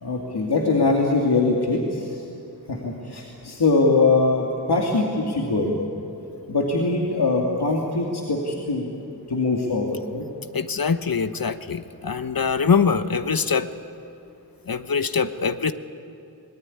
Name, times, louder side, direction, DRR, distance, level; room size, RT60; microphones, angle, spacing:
voice 1, 0.0-2.2 2.7-5.8 6.5-10.3, left 3 dB, 80° left, -1 dB, 2.4 m, -22 dB
voice 2, 10.5-13.7 14.7-15.7, left 5 dB, 60° left, 11 dB, 1.1 m, -23 dB
25.5 x 19.0 x 9.8 m, 2.7 s
wide cardioid pair, 50°, 39 cm